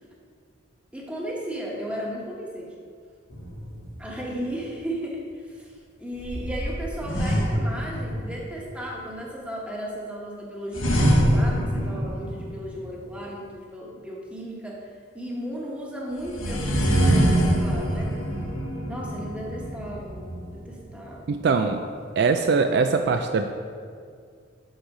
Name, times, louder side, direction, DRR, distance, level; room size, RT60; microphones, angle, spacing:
voice 1, 0.9-2.8 4.0-18.2 18.8-21.8, equal, 5° right, -3 dB, 1.1 m, -35 dB
sound 1, 3.3-4.3 6.2-8.5 10.7-12.9 16.2-20.9, equal, 85° left, 1.3 m, -25 dB
voice 2, 21.3-21.8 22.2-23.5, right 4 dB, 55° right, 7 dB, 0.3 m, -22 dB
6.4 x 6.3 x 4.8 m, 2.2 s
head